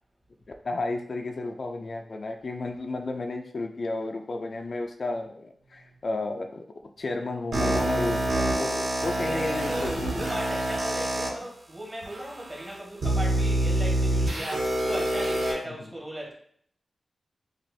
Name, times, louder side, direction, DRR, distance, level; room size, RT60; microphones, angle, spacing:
voice 1, 0.6-10.2 15.8-15.9, left 2 dB, 55° left, 4 dB, 0.5 m, -32 dB
sound 1, 7.5-11.3 12.0-12.1 13.0-15.5, right 1 dB, 85° right, 1.5 m, -26 dB
voice 2, 9.2-16.3, right 1 dB, 20° right, -2 dB, 1.7 m, -37 dB
7.4 x 2.5 x 2.7 m, 0.63 s
wide cardioid pair, 95°, 0 cm